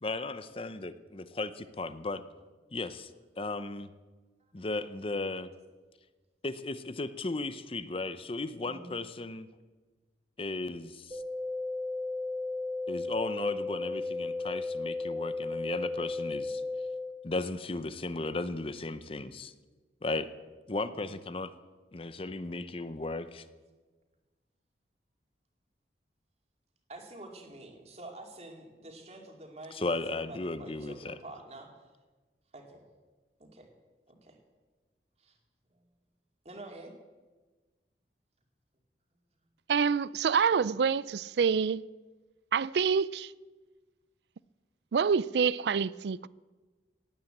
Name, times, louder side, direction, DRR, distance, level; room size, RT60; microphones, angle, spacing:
voice 1, 0.0-2.2 2.7-3.1 3.4-3.9 4.5-5.5 6.4-9.5 10.4-11.2 12.9-16.6 17.2-19.5 20.0-20.3 20.7-21.5 21.9-23.4 29.7-31.2, left 2 dB, 30° left, 0.7 m, -35 dB
voice 2, 8.6-9.0 20.9-21.2 26.9-31.7 32.5-32.8 33.4-33.7 34.1-34.4 35.2-35.4 36.4-36.9, right 2 dB, 35° right, 2.4 m, -47 dB
sound 1, 11.1-17.1, left 3 dB, 15° right, 2.5 m, -34 dB
voice 3, 39.7-41.8 42.5-43.3 44.9-46.3, right 6 dB, 70° right, 0.4 m, -27 dB
17.5 x 8.9 x 7.9 m
head